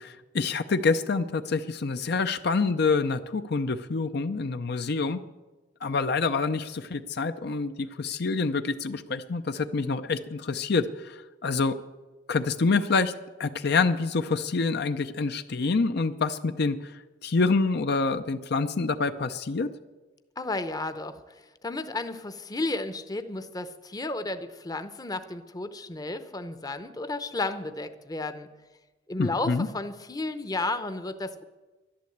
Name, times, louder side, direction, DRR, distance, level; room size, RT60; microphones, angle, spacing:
voice 1, 0.0-5.2 5.8-11.1 11.4-11.8 12.3-13.1 13.4-16.9 17.2-19.7 29.2-29.7, left 4 dB, 60° left, 9 dB, 0.6 m, -26 dB
voice 2, 20.4-21.2 21.6-28.5 29.1-31.4, left 2 dB, 20° left, 10 dB, 0.7 m, -33 dB
11.5 x 11.5 x 7.9 m, 1.2 s
head